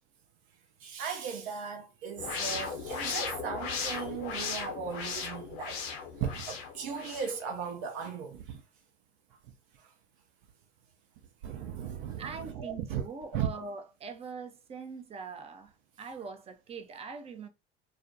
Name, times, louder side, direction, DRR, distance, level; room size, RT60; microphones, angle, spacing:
voice 1, 0.8-5.8 6.2-8.6 11.4-13.0 13.3-13.5, right 7 dB, 60° right, 0.6 m, -37 dB
sound 1, 2.2-7.3, left 5 dB, 65° left, 0.8 m, -37 dB
voice 2, 12.2-17.5, right 5 dB, 20° right, 0.4 m, -42 dB
2.5 x 2.1 x 2.6 m
hypercardioid pair, 80°, 30 cm